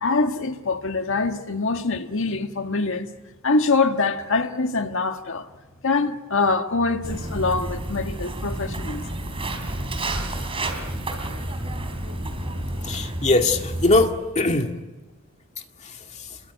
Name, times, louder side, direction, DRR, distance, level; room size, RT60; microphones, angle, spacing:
voice 1, 0.0-3.1 3.4-5.5 5.8-9.0, left 3 dB, 65° left, 1.7 m, -24 dB
Walk footsteps, 7.0-14.1, right 1 dB, 25° right, 3.8 m, -30 dB
voice 2, 12.8-14.7 15.8-16.4, left 2 dB, 35° left, 2.1 m, -22 dB
27.5 x 22.5 x 9.3 m
head